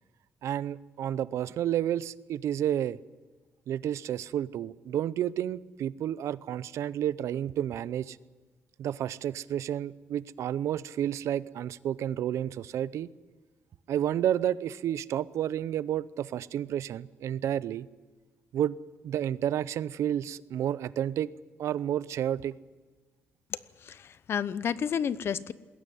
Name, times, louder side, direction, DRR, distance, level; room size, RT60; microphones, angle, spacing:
voice 1, 0.4-3.0 3.7-8.2 8.8-13.1 13.9-17.9 18.5-18.8 19.0-21.3 21.6-22.6, right 10 dB, 90° right, 18 dB, 0.6 m, -30 dB
voice 2, 23.5-25.5, left 8 dB, 55° left, 16 dB, 0.8 m, -31 dB
21.0 x 16.5 x 9.3 m, 1.3 s
cardioid pair, 130°, 5 cm